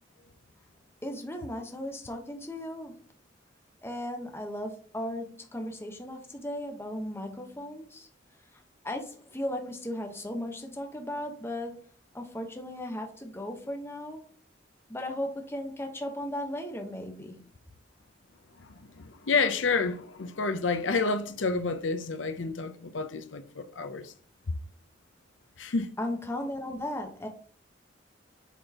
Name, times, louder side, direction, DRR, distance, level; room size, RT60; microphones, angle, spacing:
voice 1, 1.0-3.0 3.8-8.1 8.8-11.9 12.1-14.3 14.9-17.5 26.0-27.3, left 1 dB, 15° left, 1.1 m, -36 dB
voice 2, 18.6-24.1 24.5-24.6 25.6-25.9, left 4 dB, 85° left, 0.7 m, -29 dB
8.1 x 4.4 x 2.9 m
head